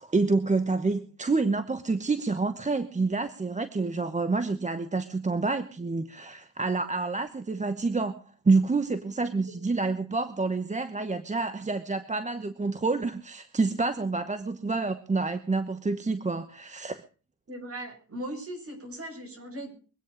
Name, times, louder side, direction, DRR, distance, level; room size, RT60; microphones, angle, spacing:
voice 1, 0.0-8.2 8.4-17.0, right 3 dB, 25° right, 10 dB, 1.0 m, -28 dB
voice 2, 17.5-19.7, right 1 dB, 45° right, 3 dB, 7.2 m, -38 dB
23.5 x 9.4 x 5.0 m, 0.37 s
wide cardioid pair, 125°, 31 cm